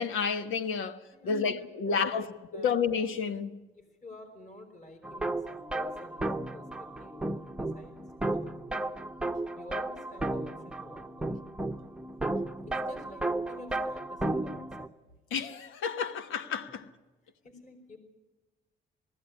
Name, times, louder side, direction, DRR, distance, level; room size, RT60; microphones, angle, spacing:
voice 1, 0.0-3.6 15.3-16.8, left 6 dB, 85° left, 1.2 m, -31 dB
voice 2, 1.1-1.5 1.9-2.8 4.0-6.3 6.5-7.9 8.3-8.9 9.6-11.4 12.6-14.9 16.7-16.8 17.4-18.0, left 2 dB, 40° left, 4.7 m, -50 dB
sound 1, 5.0-14.9, right 2 dB, 5° right, 0.8 m, -34 dB
20.0 x 15.5 x 9.8 m
cardioid pair, 90°, 20 cm